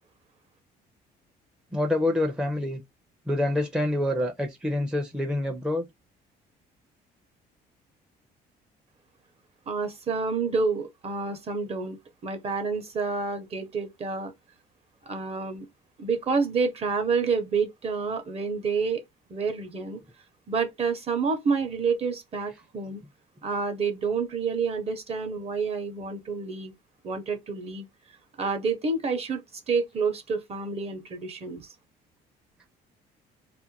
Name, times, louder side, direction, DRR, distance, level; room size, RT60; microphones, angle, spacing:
voice 1, 1.7-2.8 3.3-5.9, left 1 dB, 5° right, 0.5 m, -26 dB
voice 2, 9.7-14.3 15.1-15.7 16.0-19.0 19.3-20.0 20.5-23.0 23.4-26.7 27.0-27.9 28.4-29.4 29.7-31.6, right 4 dB, 35° right, 0.8 m, -28 dB
2.5 x 2.1 x 2.8 m
cardioid pair, 110°, 17 cm